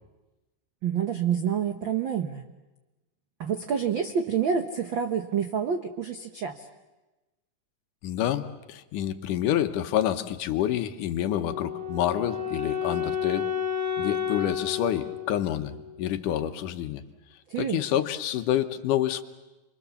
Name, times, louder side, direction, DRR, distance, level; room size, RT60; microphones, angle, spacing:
voice 1, 0.8-2.4 3.4-6.6 17.5-17.8, right 7 dB, 85° right, 6 dB, 1.0 m, -28 dB
voice 2, 8.0-13.5 14.0-17.0 17.6-19.2, left 11 dB, 75° left, 8 dB, 2.5 m, -28 dB
Wind instrument woodwind instrument, 11.2-16.2, left 8 dB, 40° right, 2.7 m, -31 dB
29.0 x 23.5 x 7.1 m, 1.1 s
omnidirectional pair, 3.8 m